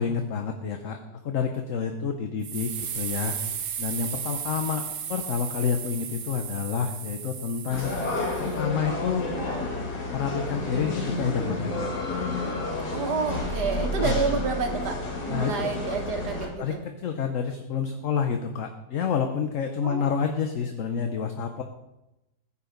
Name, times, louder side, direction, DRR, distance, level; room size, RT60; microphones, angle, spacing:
voice 1, 0.0-3.4 3.8-8.0 8.4-9.3 10.1-11.9 14.0-14.2 15.3-15.7 16.6-21.6, left 6 dB, 55° left, 5 dB, 1.2 m, -29 dB
sound 1, 2.4-8.6, right 8 dB, 65° right, 1.3 m, -35 dB
sound 2, 7.7-16.5, left 2 dB, 75° left, 2.4 m, -30 dB
voice 2, 12.9-16.8 19.8-20.1, right 4 dB, 90° right, 3 dB, 2.0 m, -29 dB
15.5 x 8.5 x 5.3 m, 0.94 s
omnidirectional pair, 1.7 m